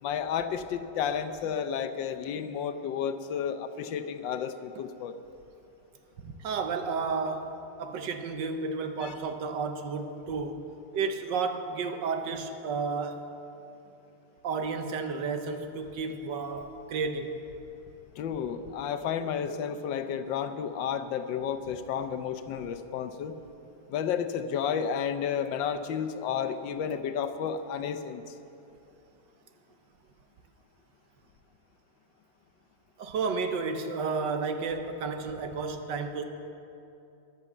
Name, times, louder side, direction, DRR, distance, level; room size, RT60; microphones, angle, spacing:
voice 1, 0.0-5.1 9.0-9.1 18.2-23.3 23.9-28.2, left 7 dB, 85° left, 9 dB, 1.5 m, -32 dB
voice 2, 6.2-10.6 10.9-13.2 14.4-17.4 33.0-36.2, right 4 dB, 75° right, 7 dB, 1.6 m, -32 dB
13.0 x 11.0 x 7.2 m, 2.8 s
omnidirectional pair, 2.0 m